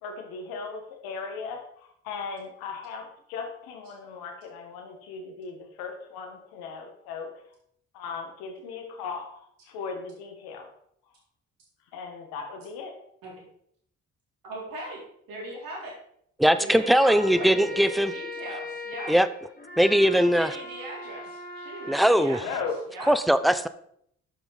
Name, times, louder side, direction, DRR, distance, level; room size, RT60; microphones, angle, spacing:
voice 1, 0.0-7.4 7.9-10.7 11.9-13.0 22.3-22.8, left 5 dB, 85° left, 5 dB, 1.6 m, -37 dB
voice 2, 14.4-15.0 15.3-15.9 16.6-19.1 19.8-22.6 22.9-23.1, right 2 dB, 70° right, -3 dB, 4.2 m, -39 dB
voice 3, 16.4-18.1 19.1-19.3 19.8-20.5 21.9-22.4 23.1-23.7, equal, ahead, 12 dB, 0.8 m, -20 dB
sound 1, 16.5-22.1, left 3 dB, 25° left, 2.2 m, -39 dB
8.4 x 6.0 x 5.8 m, 0.69 s
hypercardioid pair, 50°, 35 cm